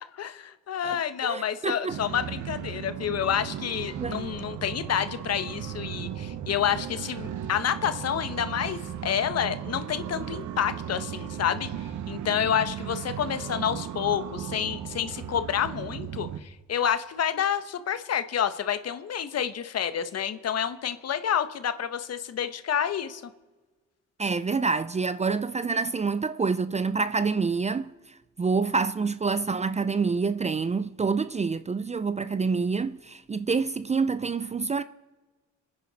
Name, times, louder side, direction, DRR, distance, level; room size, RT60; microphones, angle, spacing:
voice 1, 0.1-11.7 12.1-23.2, left 9 dB, 55° left, 1.1 m, -29 dB
voice 2, 0.8-2.0 4.0-4.3 24.2-34.8, right 4 dB, 25° right, 0.5 m, -27 dB
sound 1, 1.9-16.4, right 9 dB, 75° right, 1.1 m, -36 dB
27.0 x 10.0 x 4.1 m
cardioid pair, 90°, 30 cm